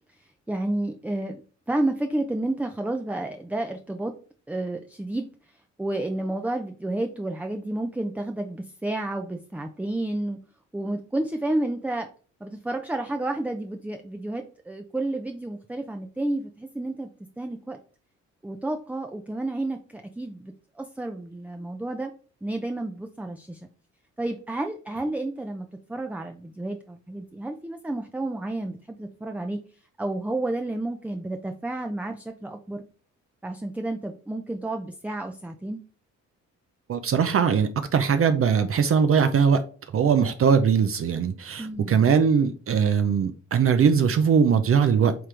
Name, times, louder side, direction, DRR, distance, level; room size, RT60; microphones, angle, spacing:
voice 1, 0.5-1.4 1.7-4.2 4.5-5.3 5.8-10.4 10.7-12.1 12.4-17.1 17.4-17.8 18.4-22.1 22.4-23.6 24.2-29.6 30.0-32.8 33.4-35.8 41.6-42.0, right 2 dB, 5° right, 5 dB, 0.6 m, -31 dB
voice 2, 36.9-39.6 39.9-45.2, right 6 dB, 50° right, 9 dB, 0.7 m, -21 dB
7.8 x 3.7 x 3.3 m, 0.40 s
cardioid pair, 90°, 30 cm